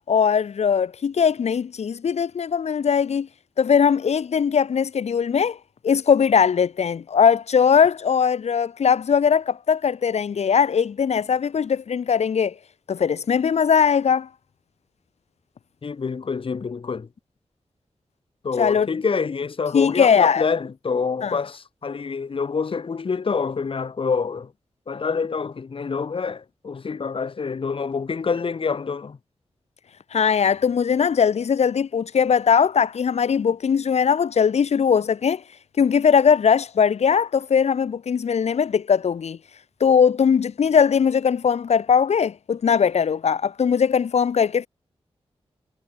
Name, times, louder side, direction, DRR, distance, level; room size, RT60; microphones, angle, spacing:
voice 1, 0.1-3.3 3.6-5.6 5.8-12.5 12.9-14.3 18.6-18.9 19.7-20.4 21.2-21.4 30.1-35.4 35.8-39.4 39.8-44.7, left 7 dB, 85° left, 1.7 m, -20 dB
voice 2, 15.8-17.1 18.4-24.5 24.9-29.2, left 5 dB, 55° left, 2.6 m, -26 dB
wide cardioid pair, 125°, 11 cm